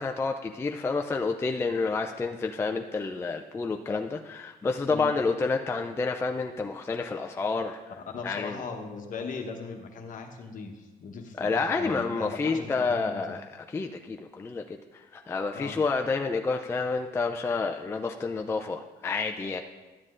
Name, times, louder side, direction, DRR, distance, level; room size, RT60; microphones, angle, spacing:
voice 1, 0.0-7.8 8.2-8.6 11.4-19.6, left 4 dB, 15° left, 4 dB, 0.3 m, -29 dB
voice 2, 8.0-13.4 15.5-15.8, left 4 dB, 50° left, 4 dB, 1.0 m, -39 dB
12.0 x 7.5 x 2.5 m, 1.2 s
cardioid pair, 110°, 17 cm